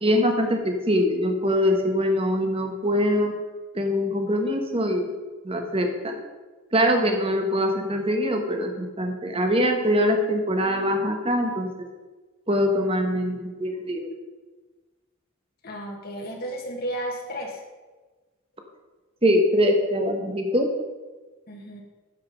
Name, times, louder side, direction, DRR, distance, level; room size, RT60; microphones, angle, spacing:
voice 1, 0.0-3.4 3.7-5.1 5.4-6.2 6.7-11.9 12.5-14.1 19.2-20.7, equal, 25° right, 4 dB, 1.1 m, -23 dB
voice 2, 15.6-17.6 21.5-21.8, right 1 dB, 45° left, 0 dB, 1.7 m, -33 dB
9.2 x 7.3 x 5.0 m, 1.3 s
head